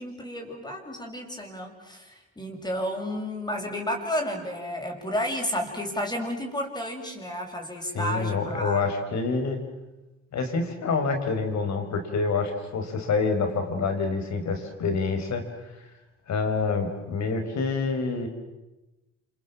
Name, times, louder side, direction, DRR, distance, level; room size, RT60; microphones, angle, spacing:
voice 1, 0.0-8.8, equal, 15° left, 1 dB, 6.5 m, -32 dB
voice 2, 7.9-9.6 10.3-15.4 16.3-18.3, left 4 dB, 65° left, 6 dB, 5.3 m, -27 dB
29.0 x 27.5 x 7.5 m, 1.1 s
cardioid pair, 90°, 30 cm